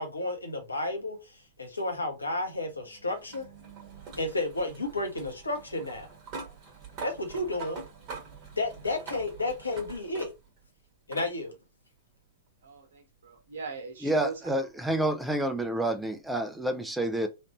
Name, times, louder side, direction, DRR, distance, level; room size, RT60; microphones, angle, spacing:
voice 1, 0.0-3.5 4.2-6.1 7.0-7.8 8.6-10.3 11.1-11.5, left 2 dB, 80° left, 0.9 m, -32 dB
sound 1, 1.8-10.6 11.1-11.3 12.6-12.7 15.6-15.7, right 5 dB, 30° right, 1.2 m, -45 dB
voice 2, 12.6-14.6, right 5 dB, 60° right, 1.1 m, -40 dB
voice 3, 14.0-17.3, right 1 dB, 5° right, 0.5 m, -29 dB
3.2 x 2.5 x 3.0 m
figure-of-eight pair, 100°, 0 cm